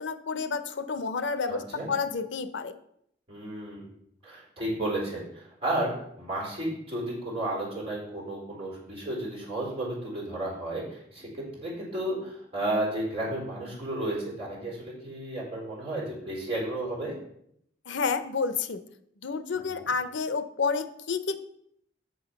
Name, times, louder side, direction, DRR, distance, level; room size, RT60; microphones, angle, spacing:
voice 1, 0.0-2.8 17.9-18.8 19.2-21.4, left 5 dB, 85° left, 11 dB, 0.7 m, -30 dB
voice 2, 1.5-1.9 3.3-3.9 4.2-17.2 19.5-19.9, right 1 dB, 30° right, -4 dB, 4.3 m, -33 dB
8.0 x 6.4 x 5.9 m, 0.72 s
head